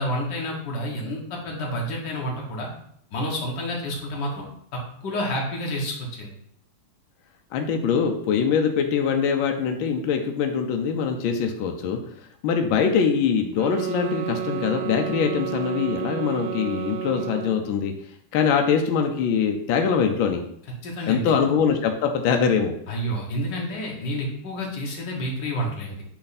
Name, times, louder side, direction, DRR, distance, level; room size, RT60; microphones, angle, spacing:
voice 1, 0.0-2.7 3.1-6.3 20.8-21.3 22.9-26.0, equal, 55° left, -2 dB, 1.9 m, -29 dB
voice 2, 7.5-12.0 12.4-17.9 18.3-20.4 21.1-22.8, left 6 dB, 70° left, 4 dB, 1.4 m, -23 dB
sound 1, 13.5-17.7, right 8 dB, 85° right, 0.9 m, -31 dB
8.5 x 3.2 x 4.1 m, 0.69 s
omnidirectional pair, 2.4 m